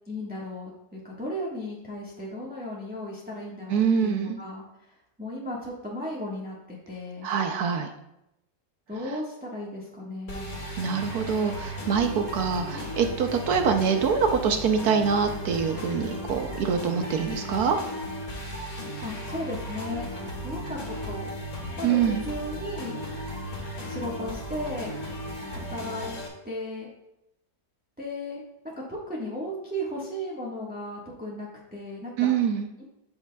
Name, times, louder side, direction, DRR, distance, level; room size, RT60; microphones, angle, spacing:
voice 1, 0.1-4.6 5.2-6.5 6.9-7.3 8.9-10.6 19.0-20.1 20.4-21.3 21.8-23.0 23.9-24.9 25.5-26.2 26.4-26.9 28.0-28.4 28.9-32.3, left 1 dB, 5° right, -5 dB, 1.1 m, -35 dB
voice 2, 3.7-4.4 7.2-7.9 10.8-17.8 21.8-22.2 32.2-32.7, right 6 dB, 70° right, 6 dB, 1.1 m, -25 dB
sound 1, 10.3-26.3, equal, 55° left, 2.3 m, -35 dB
13.0 x 5.8 x 2.3 m, 0.85 s
omnidirectional pair, 1.9 m